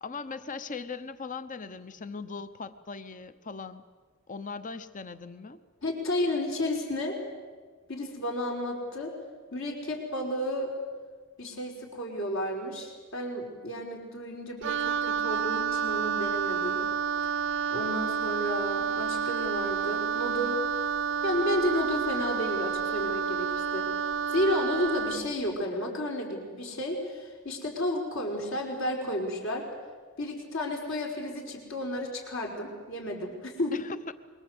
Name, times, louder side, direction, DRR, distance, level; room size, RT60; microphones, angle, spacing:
voice 1, 0.0-3.8 4.3-5.6 33.7-34.1, left 4 dB, 35° left, 12 dB, 1.0 m, -39 dB
voice 2, 5.8-7.1 7.9-9.1 9.5-10.7 11.4-16.8 17.7-20.6 21.2-23.9 24.3-29.7 30.2-33.8, left 1 dB, 65° left, 1 dB, 5.0 m, -32 dB
Wind instrument woodwind instrument, 14.6-25.3, right 7 dB, 55° right, 0.7 m, -30 dB
26.0 x 23.5 x 8.1 m, 1.5 s
head